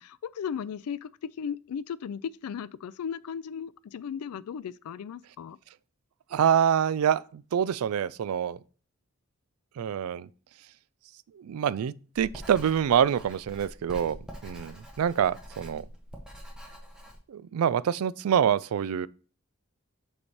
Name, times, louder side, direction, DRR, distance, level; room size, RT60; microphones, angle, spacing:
voice 1, 0.0-5.6, left 7 dB, 85° left, 0.3 m, -36 dB
voice 2, 6.3-8.6 9.8-10.3 11.3-15.9 17.3-19.1, right 8 dB, 80° right, 0.3 m, -26 dB
Writing, 12.1-17.2, equal, 5° right, 1.1 m, -45 dB
6.9 x 3.3 x 4.2 m
head